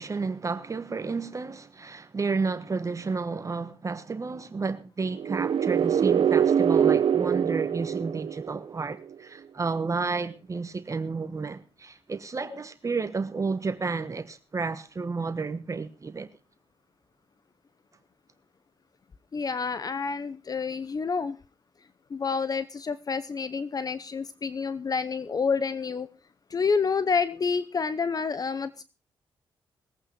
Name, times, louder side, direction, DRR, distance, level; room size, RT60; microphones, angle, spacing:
voice 1, 0.0-16.3, right 4 dB, 35° right, 1.2 m, -31 dB
sound 1, 5.1-8.9, right 8 dB, 65° right, 0.8 m, -24 dB
voice 2, 19.3-21.4 22.1-26.1 26.5-28.8, left 5 dB, 40° left, 0.8 m, -28 dB
20.5 x 8.8 x 4.8 m
cardioid pair, 85°, 10 cm